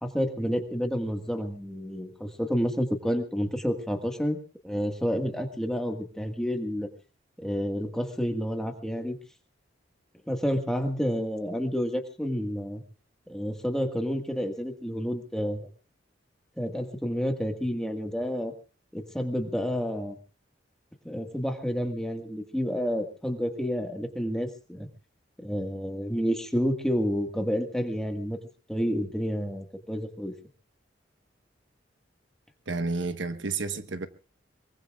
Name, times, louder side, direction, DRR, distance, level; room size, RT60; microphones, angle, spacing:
voice 1, 0.0-4.4 4.6-6.9 7.4-9.2 10.3-12.8 13.3-15.7 16.6-18.5 18.9-20.2 21.0-24.9 25.4-28.4 28.7-30.3, equal, 5° left, 1.6 m, -29 dB
voice 2, 32.7-34.1, right 3 dB, 80° right, 1.2 m, -30 dB
23.5 x 23.0 x 2.4 m
head